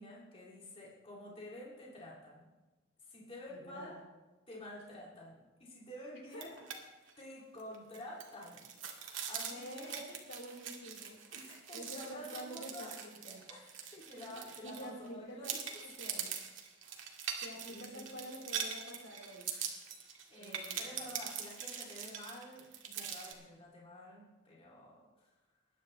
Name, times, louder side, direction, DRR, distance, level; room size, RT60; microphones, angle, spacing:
voice 1, 0.0-2.5 3.0-4.0 4.5-6.6 7.2-9.9 11.3-13.0 13.5-15.7 17.2-17.3 17.7-18.1 19.9-25.3, left 1 dB, 30° left, -4 dB, 2.4 m, -50 dB
voice 2, 3.5-3.9 6.3-6.4 9.4-13.4 14.6-15.5 16.0-16.3 17.4-19.5 20.4-21.1, equal, 75° left, -1 dB, 3.9 m, -48 dB
sound 1, 6.3-6.8 7.1-7.2 7.6-15.1 15.4-23.3, right 7 dB, 85° right, 1.9 m, -43 dB
20.5 x 10.0 x 3.2 m, 1.2 s
head